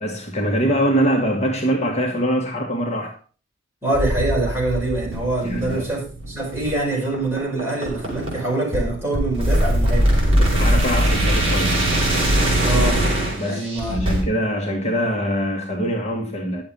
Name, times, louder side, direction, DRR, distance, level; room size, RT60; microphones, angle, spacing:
voice 1, 0.0-3.2 5.4-5.9 10.4-11.9 13.4-16.6, equal, 35° left, 1.6 m, -23 dB
voice 2, 3.8-10.1 12.6-13.0 13.4-14.1, right 2 dB, 15° right, 6.0 m, -25 dB
sound 1, 3.9-14.2, right 1 dB, 30° right, 4.6 m, -21 dB
11.0 x 7.3 x 5.3 m
head